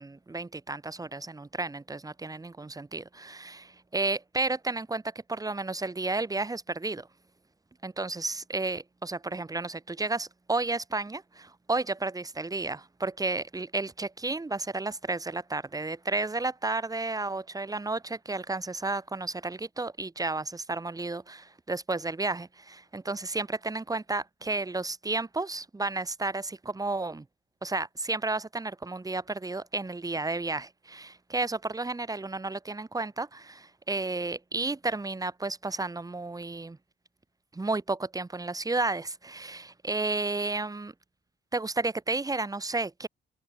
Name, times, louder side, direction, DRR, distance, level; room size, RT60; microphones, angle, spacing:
voice 1, 0.0-7.1 7.8-27.3 27.6-36.8 37.5-40.9 41.5-43.1, right 3 dB, 20° right, 2.2 m, -32 dB
cardioid pair, 90°, 20 cm